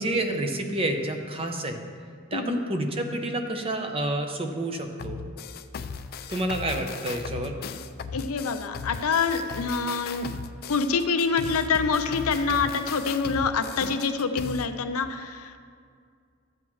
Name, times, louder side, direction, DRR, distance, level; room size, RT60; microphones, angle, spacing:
voice 1, 0.0-1.8 2.3-5.2 6.3-7.6, right 1 dB, 25° right, 4 dB, 0.7 m, -29 dB
sound 1, 5.0-14.7, left 6 dB, 45° left, 0.4 m, -37 dB
voice 2, 8.1-10.3 10.7-15.6, left 5 dB, 90° left, 7 dB, 0.6 m, -26 dB
13.0 x 7.7 x 3.1 m, 2.2 s
head